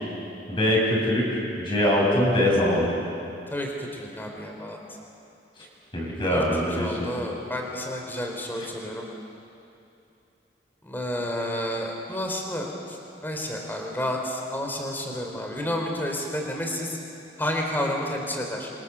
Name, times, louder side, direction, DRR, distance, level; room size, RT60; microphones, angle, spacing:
voice 1, 0.5-2.9 5.9-7.1, left 1 dB, 30° left, -4 dB, 6.6 m, -23 dB
voice 2, 3.5-4.8 6.3-9.0 10.8-13.0 13.2-17.0 17.4-18.7, left 1 dB, 10° left, 1 dB, 3.5 m, -30 dB
28.5 x 25.0 x 6.9 m, 2.7 s
head